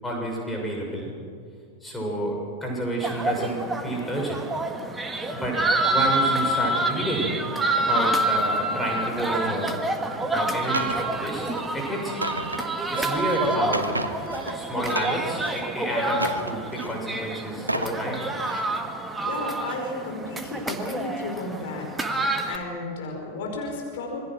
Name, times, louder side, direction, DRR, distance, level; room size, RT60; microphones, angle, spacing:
voice 1, 0.0-1.1 1.8-4.4 5.3-5.6 5.9-7.4 7.8-9.7 10.2-11.5 11.7-12.2 12.9-13.9 14.5-18.2, right 1 dB, 5° left, -1 dB, 6.5 m, -30 dB
sound 1, 3.0-22.6, right 2 dB, 10° right, 1.8 m, -27 dB
sound 2, 10.7-11.0 11.4-11.7 12.1-14.5 14.8-15.6 16.1-17.0 17.5-18.0 18.4-18.6, right 1 dB, 85° right, 1.3 m, -32 dB
voice 2, 19.2-24.2, left 2 dB, 55° left, 1 dB, 5.0 m, -33 dB
27.0 x 21.5 x 6.2 m, 2.2 s
figure-of-eight pair, 90°, 0 cm